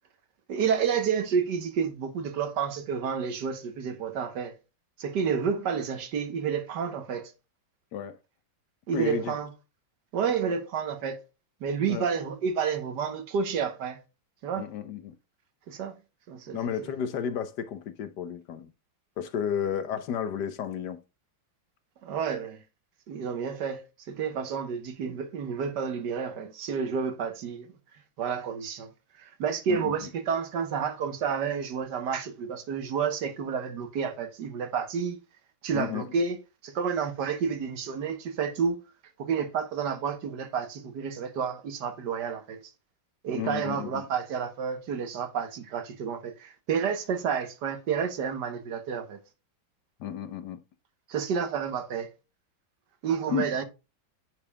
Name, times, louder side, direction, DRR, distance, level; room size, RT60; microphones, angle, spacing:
voice 1, 0.5-4.6 5.0-7.3 8.9-9.5 10.1-11.2 11.6-14.0 14.4-14.7 15.7-15.9 16.3-16.6 22.0-22.6 23.1-27.7 28.2-28.9 29.1-35.2 35.6-36.4 36.6-38.8 39.2-42.7 43.2-49.2 51.1-52.1 53.0-53.6, right 6 dB, 65° right, 1.5 m, -30 dB
voice 2, 8.9-9.3 11.9-12.1 14.6-15.1 16.5-18.7 19.2-21.0 29.7-30.1 35.7-36.1 43.4-44.0 50.0-50.6 53.3-53.5, left 8 dB, 70° left, 1.3 m, -32 dB
9.6 x 5.3 x 2.2 m
omnidirectional pair, 2.0 m